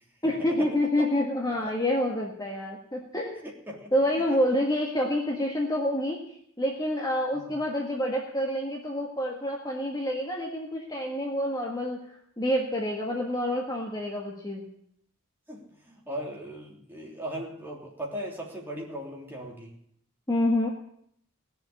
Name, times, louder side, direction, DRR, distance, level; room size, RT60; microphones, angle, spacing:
voice 1, 0.2-3.4 3.9-14.7 20.3-20.7, left 1 dB, 20° left, -1 dB, 1.6 m, -28 dB
voice 2, 3.4-3.9 4.3-4.4 7.3-7.4 15.5-19.7, right 1 dB, 10° right, -2 dB, 3.2 m, -38 dB
18.0 x 7.1 x 9.7 m, 0.69 s
head